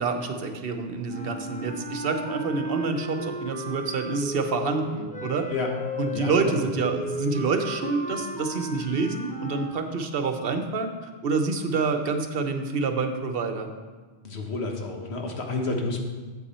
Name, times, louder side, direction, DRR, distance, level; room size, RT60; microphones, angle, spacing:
voice 1, 0.0-5.5 6.0-10.9 11.2-13.7 15.8-16.0, right 4 dB, 65° right, 6 dB, 0.9 m, -27 dB
sound 1, 1.1-9.8, equal, 10° left, 0.3 m, -35 dB
voice 2, 6.1-6.7 14.2-16.0, left 3 dB, 85° left, 2 dB, 1.4 m, -30 dB
8.2 x 7.9 x 4.3 m, 1.4 s
omnidirectional pair, 1.1 m